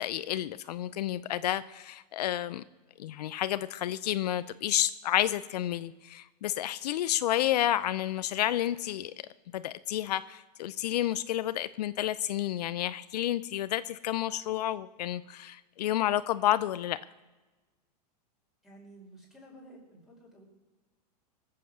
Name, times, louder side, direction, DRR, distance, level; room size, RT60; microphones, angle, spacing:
voice 1, 0.0-2.6 3.0-9.1 9.5-17.0, left 13 dB, 80° left, 15 dB, 0.6 m, -30 dB
voice 2, 18.6-20.4, right 1 dB, ahead, -3 dB, 5.2 m, -52 dB
19.5 x 7.7 x 6.4 m, 1.2 s
supercardioid pair, 135°, 20 cm